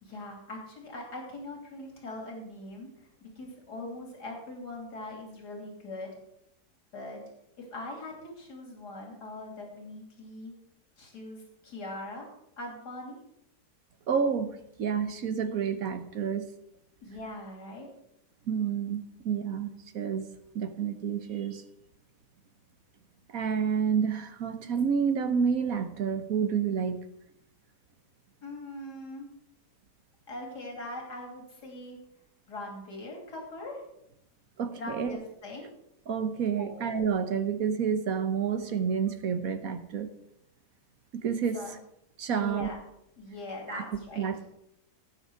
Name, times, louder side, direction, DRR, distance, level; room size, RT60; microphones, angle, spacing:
voice 1, 0.0-6.2 6.9-7.2 7.6-10.5 11.0-12.3 12.6-13.2 17.0-17.9 28.4-29.3 30.3-32.0 32.5-33.8 34.8-35.7 36.6-36.8 41.5-41.8 42.3-42.8 43.2-44.3, left 2 dB, 85° left, 1 dB, 3.4 m, -41 dB
voice 2, 14.1-16.4 18.5-19.7 19.9-20.3 20.5-21.6 23.3-27.0 34.6-35.2 36.1-40.1 41.1-41.8 42.2-42.7 43.7-43.8 44.2-44.5, right 7 dB, 65° right, 9 dB, 1.4 m, -29 dB
17.5 x 6.8 x 4.8 m, 0.78 s
omnidirectional pair, 1.7 m